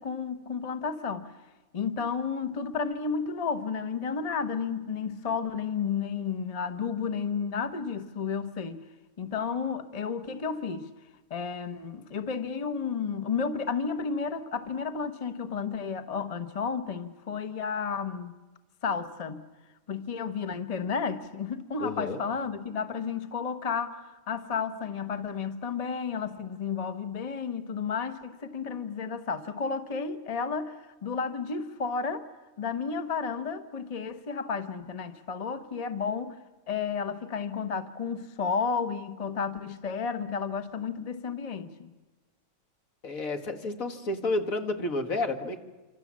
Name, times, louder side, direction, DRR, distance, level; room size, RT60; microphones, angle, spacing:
voice 1, 0.0-1.3 1.7-8.8 9.2-10.9 11.3-18.3 18.8-19.4 19.9-32.3 32.6-36.4 36.7-41.9, left 5 dB, 30° left, 1.0 m, -32 dB
voice 2, 21.8-22.2 43.0-45.6, left 2 dB, 70° left, 2.1 m, -30 dB
27.0 x 25.5 x 7.4 m
omnidirectional pair, 1.5 m